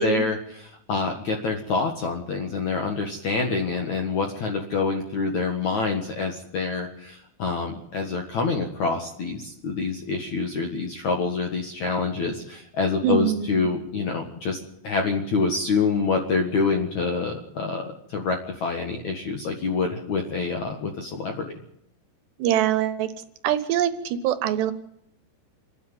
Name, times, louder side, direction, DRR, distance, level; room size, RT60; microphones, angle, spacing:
voice 1, 0.0-21.5, left 4 dB, 60° left, 3 dB, 1.9 m, -26 dB
voice 2, 13.0-13.7 22.4-23.1 23.4-24.7, right 10 dB, 70° right, 11 dB, 2.9 m, -24 dB
28.0 x 10.0 x 9.3 m, 0.75 s
omnidirectional pair, 5.8 m